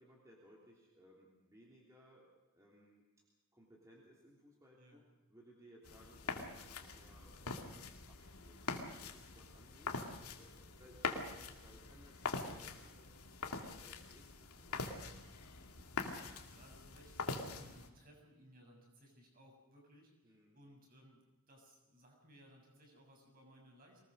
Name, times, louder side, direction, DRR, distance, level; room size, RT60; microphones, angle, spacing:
voice 1, 0.0-3.0 3.5-5.0 5.3-10.0 10.3-15.1 20.2-20.6, equal, 15° right, -3 dB, 3.2 m, -63 dB
sound 1, 5.8-17.9, left 3 dB, 80° left, 2.4 m, -44 dB
voice 2, 15.8-24.0, equal, 40° right, 1 dB, 6.7 m, -62 dB
24.0 x 20.0 x 6.4 m, 1.1 s
head